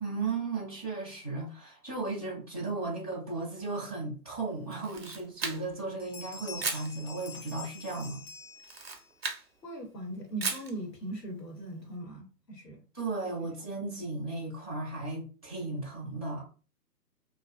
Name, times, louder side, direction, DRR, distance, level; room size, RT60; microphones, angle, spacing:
voice 1, 0.0-8.2 12.9-16.5, right 3 dB, 25° left, 0.4 m, -35 dB
Camera, 4.7-5.9 6.6-6.9 8.6-9.5 10.4-10.7, right 5 dB, 40° right, 0.5 m, -35 dB
sound 1, 5.0-5.1 5.5-5.7 6.0-9.1, left 5 dB, 55° left, 0.7 m, -46 dB
voice 2, 9.6-12.8, right 1 dB, 85° left, 1.1 m, -39 dB
2.5 x 2.1 x 2.2 m
figure-of-eight pair, 130°, 48 cm